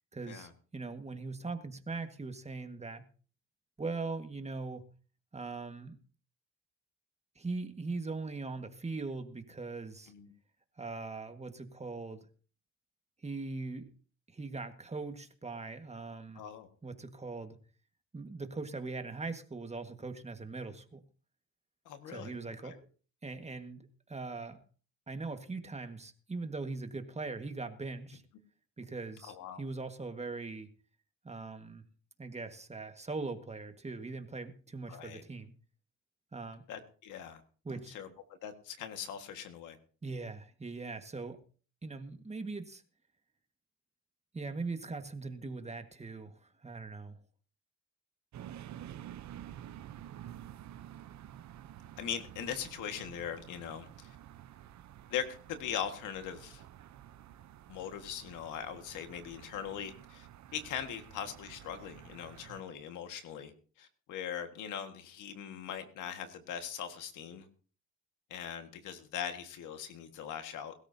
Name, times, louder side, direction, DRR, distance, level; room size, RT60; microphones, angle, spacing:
voice 1, 0.1-3.1 3.8-4.8 5.3-6.0 7.3-10.1 10.8-12.3 13.2-13.9 14.3-16.4 16.8-17.6 18.1-21.0 22.1-22.9 23.2-24.6 25.1-28.2 28.8-30.7 31.2-31.8 32.2-35.5 36.3-36.6 37.6-38.0 40.0-41.4 41.8-42.8 44.3-47.2, right 3 dB, 20° right, 7 dB, 1.7 m, -40 dB
voice 2, 16.4-16.7 21.9-22.3 22.6-22.7 29.2-29.6 34.9-35.2 36.7-37.4 37.9-38.1 38.4-39.8 52.0-54.1 55.1-56.6 57.7-63.5 63.8-67.5 68.3-70.7, left 8 dB, 90° left, 7 dB, 1.8 m, -40 dB
sound 1, 48.3-62.6, right 11 dB, 65° right, 0.8 m, -50 dB
21.5 x 13.0 x 2.8 m, 0.40 s
cardioid pair, 90°, 30 cm